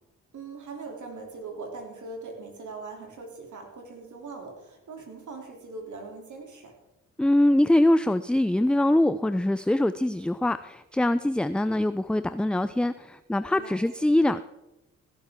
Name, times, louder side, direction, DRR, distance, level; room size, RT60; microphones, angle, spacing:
voice 1, 0.3-6.7 13.6-14.1, right 3 dB, 55° right, 1 dB, 3.2 m, -41 dB
voice 2, 7.2-14.4, left 1 dB, 5° left, 13 dB, 0.4 m, -23 dB
17.0 x 10.5 x 3.7 m, 0.95 s
hypercardioid pair, 40°, 35 cm